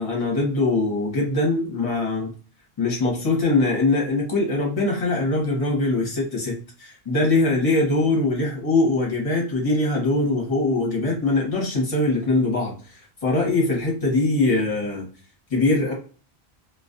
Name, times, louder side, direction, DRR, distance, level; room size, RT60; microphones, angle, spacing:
voice 1, 0.0-2.3 2.8-12.8 13.2-15.1 15.5-15.9, left 2 dB, 35° left, -1 dB, 0.9 m, -22 dB
2.3 x 2.3 x 2.5 m, 0.38 s
omnidirectional pair, 1.1 m